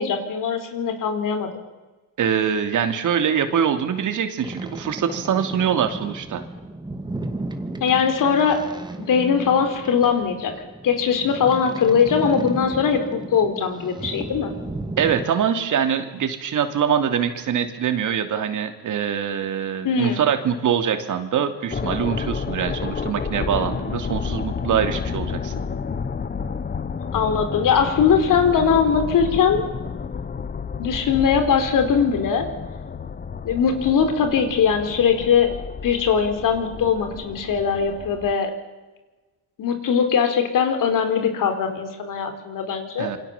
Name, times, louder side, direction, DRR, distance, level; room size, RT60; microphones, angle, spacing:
voice 1, 0.0-1.5 7.8-8.7 9.0-10.6 10.8-14.5 19.8-20.2 27.1-29.7 30.8-32.5 33.4-35.5 35.8-38.5 39.6-43.1, left 6 dB, 65° left, 7 dB, 4.4 m, -20 dB
voice 2, 2.2-6.4 15.0-25.5 43.0-43.2, right 8 dB, 60° right, 7 dB, 3.0 m, -23 dB
Boat Water vehicle, 4.4-15.2, right 2 dB, 10° right, 2.4 m, -34 dB
sound 1, 21.7-38.3, left 5 dB, 25° left, 1.0 m, -31 dB
27.5 x 24.5 x 7.4 m, 1.2 s
cardioid pair, 125°, 34 cm